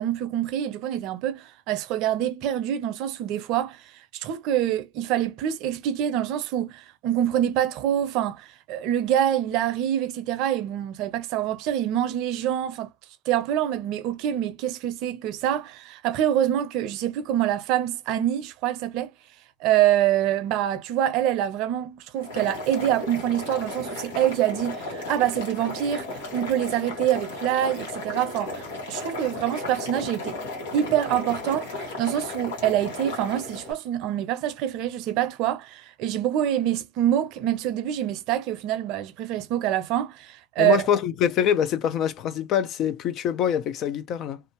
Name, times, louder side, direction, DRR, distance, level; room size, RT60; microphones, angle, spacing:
voice 1, 0.0-3.8 4.1-12.9 13.3-19.1 19.6-30.4 30.7-40.8, right 11 dB, 60° right, 0.6 m, -25 dB
Boiling, 22.2-33.7, left 2 dB, 80° left, 1.3 m, -35 dB
voice 2, 40.6-44.4, left 9 dB, 50° left, 0.5 m, -24 dB
2.6 x 2.3 x 2.9 m
hypercardioid pair, 85°, 0 cm